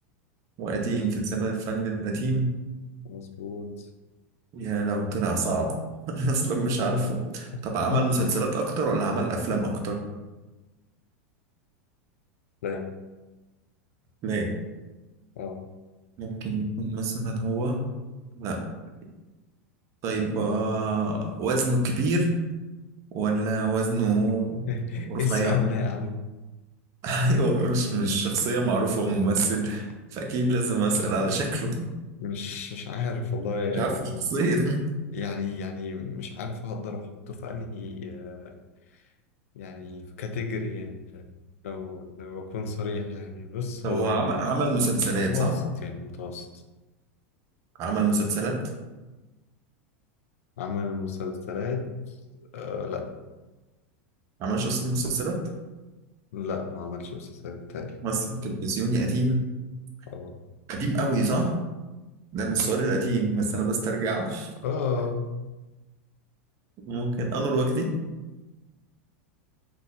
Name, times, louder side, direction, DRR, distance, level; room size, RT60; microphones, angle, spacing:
voice 1, 0.6-2.5 4.5-5.7 6.1-10.0 14.2-14.5 16.2-17.8 18.3-18.6 20.0-22.3 23.1-24.7 25.0-25.6 27.0-31.9 33.7-34.8 43.8-45.5 47.8-48.6 54.4-55.4 58.0-59.4 60.7-61.5 62.3-64.5 66.9-67.9, right 2 dB, 45° right, 2 dB, 0.7 m, -26 dB
voice 2, 3.0-3.9 7.9-8.1 12.6-12.9 15.4-15.6 24.7-26.2 32.2-34.3 35.1-38.5 38.9-39.0 39.5-41.3 41.6-44.3 45.1-46.5 50.6-52.2 52.5-53.1 56.3-58.0 60.1-60.3 62.6-63.2 64.6-65.3, left 5 dB, 80° left, 4 dB, 0.5 m, -32 dB
2.6 x 2.4 x 4.0 m, 1.1 s
hypercardioid pair, 115°, 7 cm